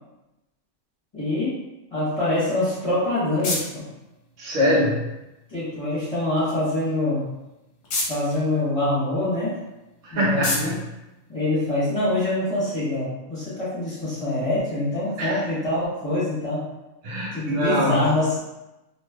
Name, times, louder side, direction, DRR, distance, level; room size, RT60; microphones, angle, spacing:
voice 1, 1.1-1.6 1.9-3.9 5.5-7.3 8.1-9.6 10.1-10.7 11.3-16.7 17.3-18.4, left 2 dB, 25° left, -11 dB, 1.3 m, -25 dB
sound 1, 2.6-12.1, left 2 dB, 65° left, 1.0 m, -36 dB
voice 2, 4.4-5.0 10.0-10.8 15.2-15.4 17.0-18.1, equal, 70° right, -4 dB, 1.1 m, -23 dB
3.1 x 2.8 x 2.3 m, 0.97 s
omnidirectional pair, 1.3 m